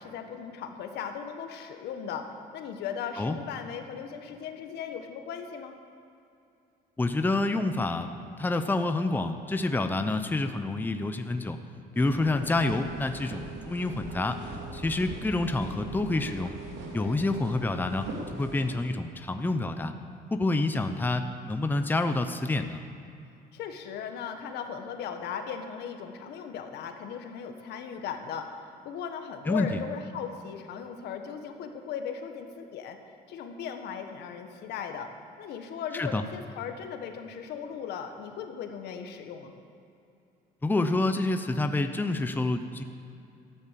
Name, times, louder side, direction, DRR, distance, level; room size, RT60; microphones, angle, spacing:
voice 1, 0.0-5.7 16.9-17.2 23.5-33.0 33.3-35.1 35.4-39.5, left 7 dB, 80° left, 6 dB, 1.5 m, -38 dB
voice 2, 7.0-8.1 8.4-11.6 11.9-16.5 16.9-18.1 18.3-19.9 20.3-22.8 29.5-29.8 35.9-36.2 40.6-42.8, left 2 dB, 10° left, 7 dB, 0.8 m, -28 dB
sound 1, 11.9-18.7, right 3 dB, 85° right, 3.1 m, -41 dB
13.5 x 11.5 x 7.6 m, 2.6 s
cardioid pair, 110°, 17 cm